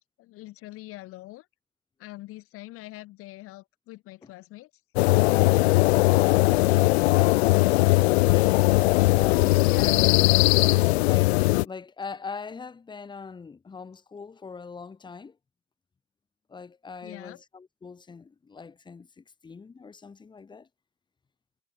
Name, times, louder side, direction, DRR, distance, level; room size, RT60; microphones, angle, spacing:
voice 1, 0.0-1.5 2.0-4.7 9.6-10.0 17.0-17.4, left 18 dB, 30° left, 2.3 m, -43 dB
sound 1, 5.0-11.6, left 21 dB, 45° left, 0.7 m, -20 dB
voice 2, 6.5-8.6 9.1-15.4 16.5-20.7, left 5 dB, 10° left, 3.5 m, -42 dB
supercardioid pair, 155°, 44 cm